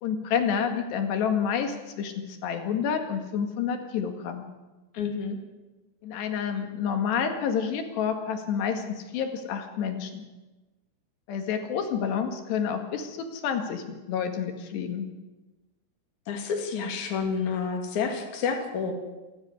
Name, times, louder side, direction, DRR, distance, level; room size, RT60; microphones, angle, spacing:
voice 1, 0.0-2.1 2.4-4.5 6.0-10.2 11.3-15.1, left 7 dB, 85° left, 6 dB, 4.1 m, -29 dB
voice 2, 4.9-5.4 16.3-18.9, left 5 dB, 50° left, 3 dB, 3.7 m, -29 dB
28.0 x 10.5 x 9.6 m, 1.1 s
omnidirectional pair, 4.7 m